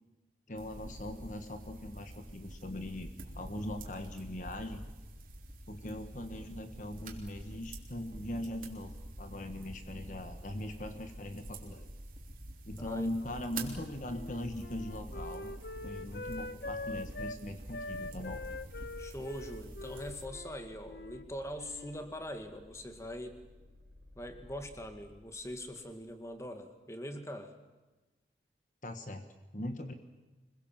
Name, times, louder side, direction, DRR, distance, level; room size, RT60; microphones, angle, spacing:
voice 1, 0.5-4.9 5.7-11.9 12.7-15.5 15.8-18.4 28.8-29.3 29.5-29.9, left 1 dB, 45° left, 7 dB, 1.4 m, -40 dB
sound 1, 0.5-20.3, right 1 dB, 50° right, 3.5 m, -47 dB
voice 2, 12.8-13.1 18.8-23.4 24.2-27.5, equal, 15° left, 7 dB, 2.0 m, -42 dB
Wind instrument woodwind instrument, 13.5-17.4 17.7-21.3 21.5-22.1, left 2 dB, 65° left, 1.1 m, -44 dB
sound 2, 19.7-26.4, left 1 dB, 80° right, 3.8 m, -57 dB
25.5 x 22.0 x 7.5 m, 1.2 s
head